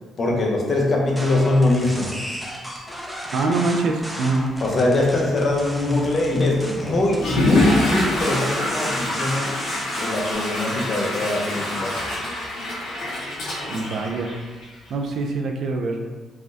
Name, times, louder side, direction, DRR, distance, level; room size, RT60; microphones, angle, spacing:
voice 1, 0.2-2.2 4.6-9.6 10.0-12.0, left 2 dB, 45° left, -1 dB, 0.7 m, -22 dB
sound 1, 1.1-10.3, equal, ahead, 0.6 m, -35 dB
voice 2, 3.3-4.5 13.7-14.3 14.9-16.0, right 3 dB, 70° right, 3 dB, 0.4 m, -24 dB
Water / Toilet flush, 7.1-14.9, left 1 dB, 80° left, 0.9 m, -25 dB
3.4 x 2.2 x 2.6 m, 1.3 s
cardioid pair, 90°, 0 cm